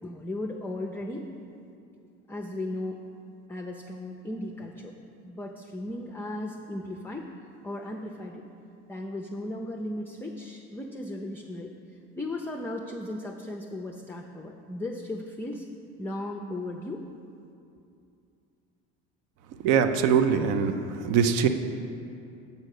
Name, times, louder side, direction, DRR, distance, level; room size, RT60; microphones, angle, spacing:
voice 1, 0.0-1.3 2.3-3.0 3.5-5.0 5.2-7.3 7.6-8.4 8.9-11.7 12.2-15.7 16.0-17.1, left 1 dB, 5° left, 1 dB, 0.4 m, -36 dB
voice 2, 19.6-20.8 21.0-21.5, right 7 dB, 70° right, 9 dB, 0.6 m, -22 dB
6.4 x 5.3 x 6.5 m, 2.6 s
supercardioid pair, 90°, 32 cm